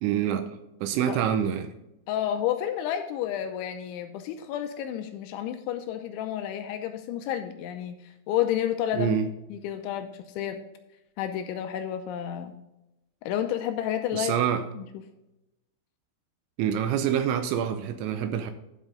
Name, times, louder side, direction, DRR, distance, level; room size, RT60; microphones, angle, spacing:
voice 1, 0.0-1.7 8.9-9.3 14.1-14.6 16.6-18.5, right 9 dB, 85° right, 9 dB, 2.8 m, -26 dB
voice 2, 2.1-9.2 9.5-10.6 11.2-12.6 13.2-14.3 14.8-14.9, left 10 dB, 80° left, 7 dB, 2.8 m, -30 dB
12.5 x 5.5 x 3.7 m, 0.93 s
omnidirectional pair, 5.8 m